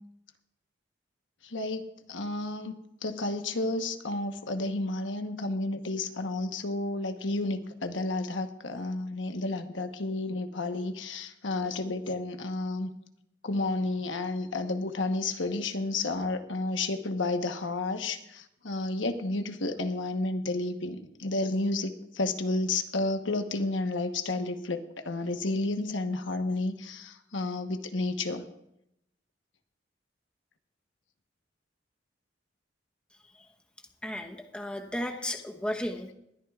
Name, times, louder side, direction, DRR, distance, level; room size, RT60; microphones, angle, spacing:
voice 1, 1.4-2.7 3.0-12.9 13.4-28.5, left 2 dB, 80° left, 7 dB, 1.1 m, -31 dB
voice 2, 34.0-36.1, left 1 dB, 5° left, 2 dB, 1.0 m, -34 dB
21.5 x 12.5 x 2.4 m, 0.79 s
head